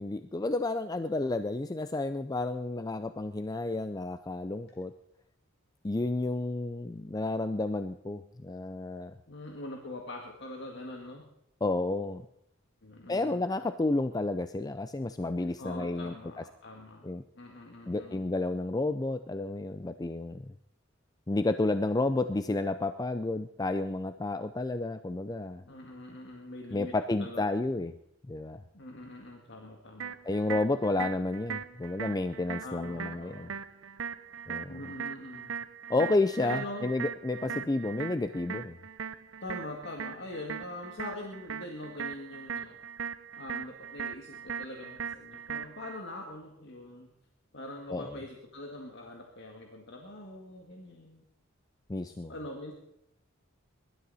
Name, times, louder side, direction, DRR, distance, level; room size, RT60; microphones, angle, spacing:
voice 1, 0.0-4.9 5.8-9.1 11.6-12.3 13.1-16.1 17.0-17.2 17.9-20.5 21.3-25.6 26.7-27.9 28.3-28.6 30.2-33.5 34.5-34.8 35.9-38.8 47.9-48.2 51.9-52.3, left 2 dB, 20° left, 10 dB, 0.4 m, -31 dB
voice 2, 9.3-11.3 12.8-13.5 15.6-17.0 17.4-18.3 25.7-27.4 28.7-30.1 32.6-33.6 34.7-35.6 36.4-36.9 37.5-37.7 39.4-42.8 43.4-47.1 47.5-51.2 52.0-52.7, left 1 dB, 60° left, 1 dB, 1.9 m, -43 dB
sound 1, 30.0-46.0, right 7 dB, 70° right, 0.7 m, -40 dB
23.0 x 12.5 x 4.1 m, 0.81 s
head